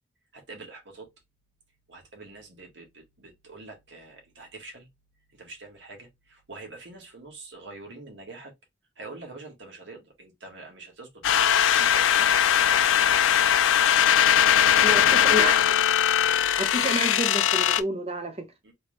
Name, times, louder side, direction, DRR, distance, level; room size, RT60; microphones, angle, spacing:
voice 1, 0.3-1.1 1.9-4.9 5.3-8.5 8.9-13.4 14.6-15.6 16.8-16.9 18.6-18.7, right 3 dB, 70° right, 1.6 m, -44 dB
sound 1, 11.2-17.8, left 9 dB, 85° left, 0.4 m, -20 dB
voice 2, 14.8-15.5 16.6-18.5, equal, 30° right, 0.8 m, -30 dB
3.5 x 3.0 x 3.2 m
head